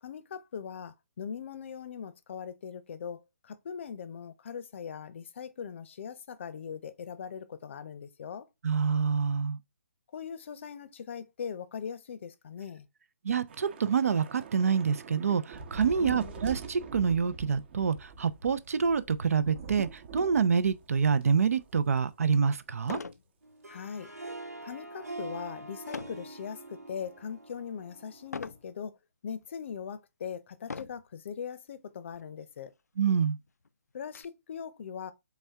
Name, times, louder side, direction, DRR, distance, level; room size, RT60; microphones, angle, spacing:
voice 1, 0.0-8.5 10.1-12.9 16.0-16.4 23.7-24.1 24.6-26.6 26.9-28.9 29.2-32.7 33.9-35.1, left 7 dB, 50° left, 0.6 m, -40 dB
voice 2, 8.6-9.6 13.2-23.0 33.0-33.4, right 6 dB, 65° right, 0.5 m, -27 dB
Thunder / Rain, 13.5-22.1 22.3-22.5 22.9-23.1, right 4 dB, 40° right, 1.0 m, -45 dB
sound 1, 21.9-22.0 22.8-23.3 23.7-24.0 25.9-26.3 26.9-27.3 28.3-28.7 29.4-29.5 30.6-31.1 32.1-32.3 32.6-32.7 33.1-34.2, left 4 dB, 90° left, 0.3 m, -41 dB
Harp, 23.4-28.6, right 2 dB, 90° right, 1.4 m, -44 dB
4.2 x 3.5 x 3.4 m
figure-of-eight pair, 145°, 9 cm